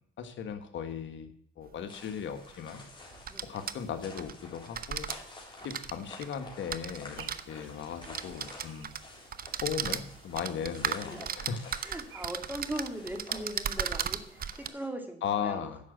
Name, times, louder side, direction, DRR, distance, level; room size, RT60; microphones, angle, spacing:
voice 1, 0.2-2.8 3.4-5.1 5.6-8.9 9.6-11.7 15.2-15.7, left 8 dB, 70° left, 7 dB, 1.5 m, -37 dB
sound 1, 1.7-1.8 3.1-4.3 4.7-5.2 5.6-7.4 8.0-9.0 9.3-14.7, right 8 dB, 50° right, 0.8 m, -35 dB
sound 2, 1.9-14.9, left 2 dB, 25° left, 3.9 m, -51 dB
sound 3, 7.2-12.2, right 9 dB, 80° right, 1.2 m, -56 dB
voice 2, 10.8-11.3 11.8-15.8, right 1 dB, 10° right, 5 dB, 2.4 m, -40 dB
10.5 x 6.1 x 8.1 m, 0.65 s
cardioid pair, 90°, 20 cm